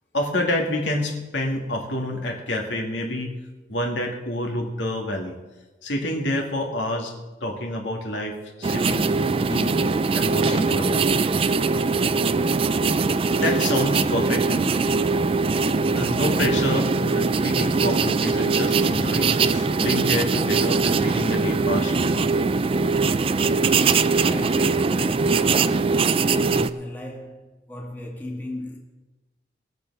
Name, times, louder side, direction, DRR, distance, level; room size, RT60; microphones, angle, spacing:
voice 1, 0.1-3.3 3.7-5.4 5.8-7.1 7.4-9.1 9.5-9.8 10.1-11.1 13.3-14.8 15.9-22.3, left 1 dB, 75° left, 2.2 m, -28 dB
sound 1, 8.6-26.7, right 4 dB, 30° right, 0.3 m, -21 dB
voice 2, 23.4-28.8, left 1 dB, 10° left, 1.8 m, -37 dB
20.0 x 7.0 x 5.5 m
head